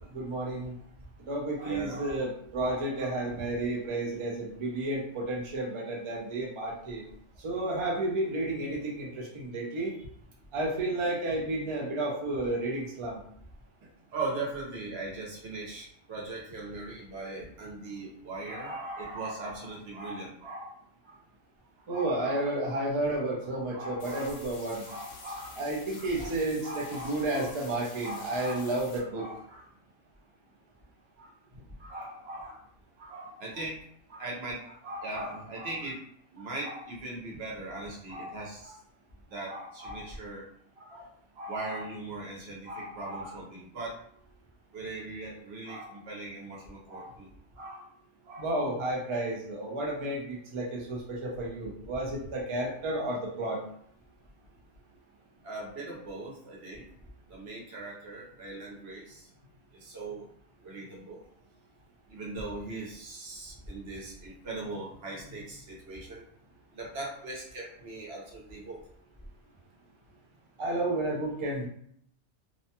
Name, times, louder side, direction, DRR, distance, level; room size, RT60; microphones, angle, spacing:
voice 1, 0.1-0.7 1.3-7.0 7.4-9.9 10.5-13.2 21.9-24.8 25.6-29.2 48.4-53.6 70.6-71.7, right 2 dB, 40° right, -3 dB, 0.4 m, -31 dB
voice 2, 1.6-2.2 2.6-3.4 8.8-8.9 10.0-10.1 14.1-20.7 21.0-21.2 21.9-22.9 23.7-24.4 24.7-25.6 25.9-26.3 26.6-27.6 28.0-29.7 31.2-32.6 33.0-33.8 34.1-36.0 36.3-38.8 39.3-40.4 40.8-44.0 44.7-47.3 47.6-47.8 48.3-48.5 55.4-56.8 57.3-59.2 59.8-60.3 60.6-61.2 62.1-66.3 66.7-68.8, right 2 dB, 60° right, -3 dB, 1.0 m, -40 dB
sound 1, 24.0-29.0, left 2 dB, 65° left, 0.9 m, -48 dB
2.6 x 2.2 x 2.8 m, 0.65 s
omnidirectional pair, 1.2 m